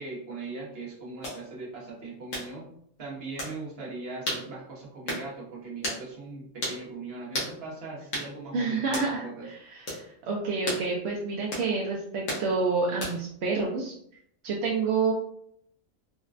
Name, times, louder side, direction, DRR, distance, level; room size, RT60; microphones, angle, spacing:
voice 1, 0.0-2.7 3.0-9.5, right 3 dB, 50° right, -3 dB, 1.1 m, -40 dB
sound 1, 1.2-1.4 2.3-2.5 3.4-3.6 4.3-4.5 5.1-5.3 5.8-6.0 6.6-6.8 7.3-7.5 8.1-8.3 8.9-9.1 9.9-10.0 10.7-10.9 11.5-11.7 12.3-12.5 13.0-13.3, left 1 dB, 75° left, 1.4 m, -32 dB
voice 2, 8.5-13.9 14.4-15.1, right 4 dB, 65° right, -2 dB, 0.7 m, -28 dB
3.9 x 2.1 x 2.4 m, 0.68 s
omnidirectional pair, 1.4 m